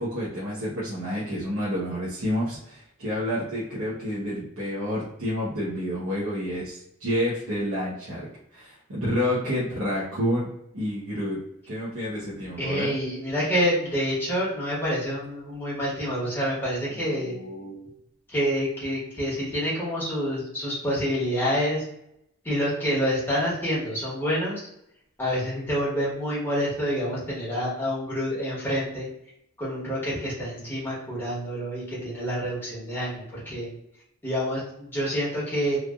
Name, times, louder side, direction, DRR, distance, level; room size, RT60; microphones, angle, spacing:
voice 1, 0.0-11.4 11.7-12.9 16.9-17.9, equal, 75° right, -8 dB, 0.9 m, -29 dB
voice 2, 12.6-17.3 18.3-21.8 22.4-24.6 25.2-29.1 29.6-33.7 34.2-35.8, equal, 10° left, -8 dB, 1.3 m, -27 dB
3.2 x 2.5 x 2.4 m, 0.78 s
head